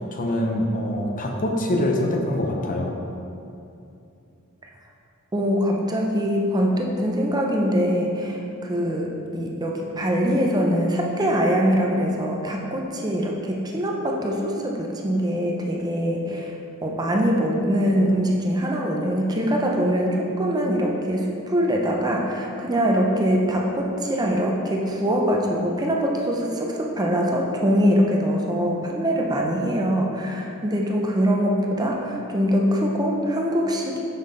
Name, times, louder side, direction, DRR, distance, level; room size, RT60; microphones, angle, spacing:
voice 1, 0.1-2.9, left 1 dB, 40° left, 1 dB, 0.6 m, -24 dB
voice 2, 5.3-16.5 16.8-34.0, equal, 20° right, 0 dB, 0.5 m, -23 dB
5.6 x 5.4 x 3.8 m, 2.6 s
head